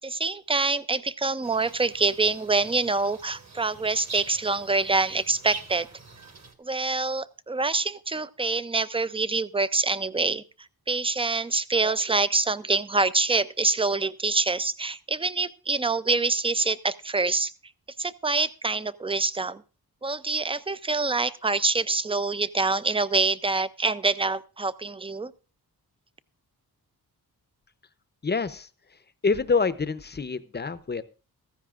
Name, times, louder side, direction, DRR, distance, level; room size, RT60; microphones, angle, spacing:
voice 1, 0.0-5.9 6.6-10.4 10.9-17.5 18.0-19.6 20.0-25.3, right 3 dB, 15° right, 15 dB, 0.5 m, -26 dB
sound 1, 1.4-6.5, right 2 dB, 45° right, 2.0 m, -44 dB
voice 2, 28.2-28.7 29.2-31.0, left 4 dB, 25° left, 14 dB, 0.8 m, -26 dB
15.5 x 14.0 x 2.5 m, 0.34 s
wide cardioid pair, 95°, 38 cm